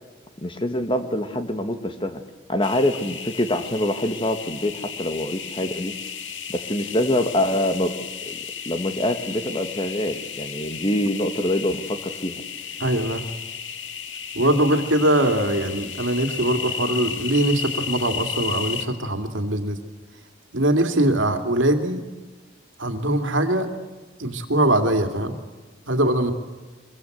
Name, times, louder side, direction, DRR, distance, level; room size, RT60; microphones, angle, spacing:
voice 1, 0.4-2.2 2.5-5.9 6.5-7.9 8.2-8.3 8.6-12.4, left 1 dB, 25° left, 8 dB, 1.6 m, -25 dB
sound 1, 2.6-18.9, left 7 dB, 75° left, 1.9 m, -34 dB
voice 2, 12.8-13.2 14.3-19.8 20.5-22.0 22.8-23.7 24.2-25.4 25.9-26.3, right 1 dB, 90° right, 6 dB, 2.5 m, -22 dB
24.0 x 23.0 x 8.0 m, 1.3 s
head